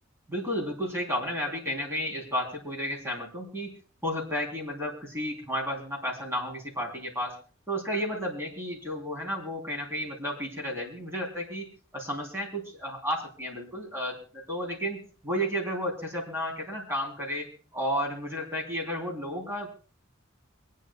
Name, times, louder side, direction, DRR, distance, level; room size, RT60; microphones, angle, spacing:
voice 1, 0.3-3.7 4.0-7.3 7.7-11.7 11.9-17.5 17.7-19.7, equal, 10° right, 1 dB, 3.5 m, -32 dB
27.0 x 9.4 x 2.4 m, 0.41 s
head